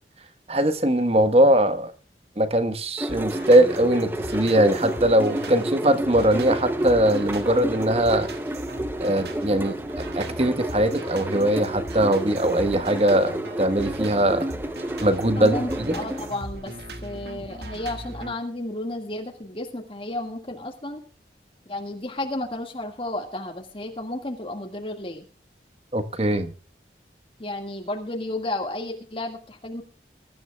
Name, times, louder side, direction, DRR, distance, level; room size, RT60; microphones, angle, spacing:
voice 1, 0.5-1.9 2.4-8.3 9.0-14.5 15.0-16.0 25.9-26.5, right 1 dB, 35° right, 10 dB, 1.2 m, -21 dB
sound 1, 3.0-16.3, right 1 dB, 10° right, 0.6 m, -31 dB
sound 2, 3.1-18.3, right 1 dB, 65° right, 1.7 m, -39 dB
voice 2, 15.4-16.7 17.0-21.0 21.7-25.2 27.4-29.8, left 1 dB, 30° left, 2 dB, 1.8 m, -32 dB
22.5 x 13.0 x 2.3 m, 0.38 s
head